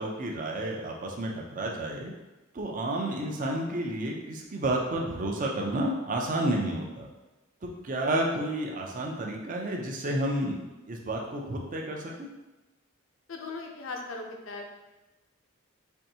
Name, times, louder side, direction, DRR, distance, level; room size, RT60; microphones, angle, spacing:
voice 1, 0.0-2.1 2.5-7.1 7.6-10.6 10.9-12.3, right 1 dB, 40° right, 0 dB, 0.5 m, -31 dB
voice 2, 13.3-14.7, left 3 dB, 65° left, 1 dB, 0.6 m, -38 dB
4.4 x 2.6 x 2.8 m, 1.1 s
head